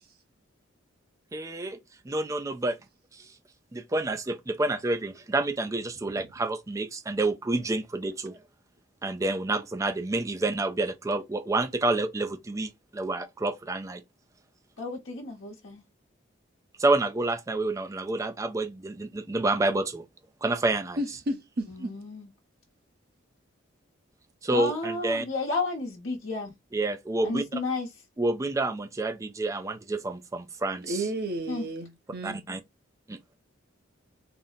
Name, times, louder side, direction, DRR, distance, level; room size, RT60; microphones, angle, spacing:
voice 1, 1.3-1.8 2.1-2.8 3.2-3.3 3.7-8.4 9.0-14.0 16.8-20.0 20.4-21.0 24.4-25.2 26.7-27.6 28.2-31.0 32.2-32.6 33.1-33.2, right 2 dB, 15° right, 0.3 m, -28 dB
voice 2, 14.8-15.8 21.7-22.3 24.5-26.5 27.2-27.9 31.5-31.6, left 3 dB, 75° left, 0.9 m, -32 dB
voice 3, 21.0-22.0 30.8-32.4, right 1 dB, 50° right, 0.8 m, -32 dB
3.9 x 2.0 x 3.9 m
head